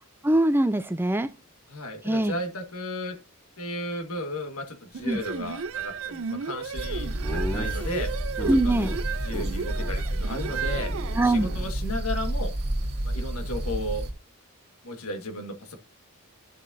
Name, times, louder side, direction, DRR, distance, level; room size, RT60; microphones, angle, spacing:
voice 1, 0.2-1.3 2.0-2.3 5.0-5.2 8.5-8.9 11.2-11.5, right 1 dB, 10° right, 0.4 m, -22 dB
voice 2, 1.7-3.2 3.6-8.1 8.5-9.0 9.2-10.9 11.2-12.5 13.0-14.0 14.8-15.8, left 1 dB, 85° left, 1.8 m, -34 dB
sound 1, 4.9-11.7, right 6 dB, 65° right, 0.5 m, -34 dB
sound 2, 6.7-14.1, right 1 dB, 50° right, 1.6 m, -30 dB
Laughter, 7.2-9.0 9.3-9.5 9.7-9.9 10.2-11.8, left 1 dB, 5° left, 1.7 m, -37 dB
11.5 x 6.1 x 2.7 m
head